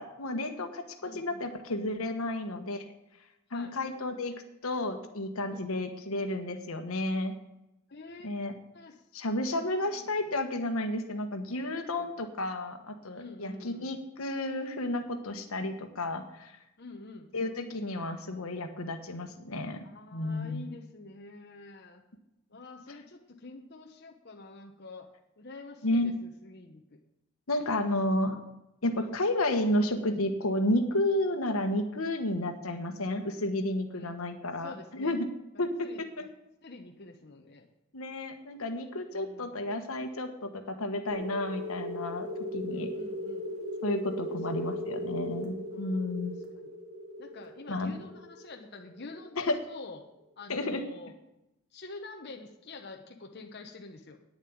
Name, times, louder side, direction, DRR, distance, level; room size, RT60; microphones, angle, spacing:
voice 1, 0.0-2.9 3.5-4.3 4.6-7.3 8.2-8.5 9.1-16.6 17.3-19.8 20.1-20.7 25.8-26.1 27.5-28.4 28.8-35.3 35.6-36.3 37.9-42.9 43.8-46.4 47.7-47.9 49.4-49.6 50.5-50.8, left 1 dB, 80° left, 7 dB, 1.3 m, -32 dB
voice 2, 1.0-1.5 3.5-3.7 5.5-6.0 7.9-8.3 8.7-10.1 12.0-12.1 13.1-13.9 16.8-17.3 19.8-22.0 22.5-25.1 25.4-27.0 33.9-34.3 34.6-35.2 35.8-36.3 36.6-37.7 39.1-39.7 42.7-43.5 44.5-44.8 45.7-46.2 46.5-46.7 47.2-50.0 50.4-51.1 51.7-54.2, left 3 dB, 50° left, 2 dB, 0.9 m, -47 dB
sound 1, 41.1-49.4, equal, 80° right, 2.6 m, -38 dB
9.4 x 7.4 x 8.7 m, 0.89 s
head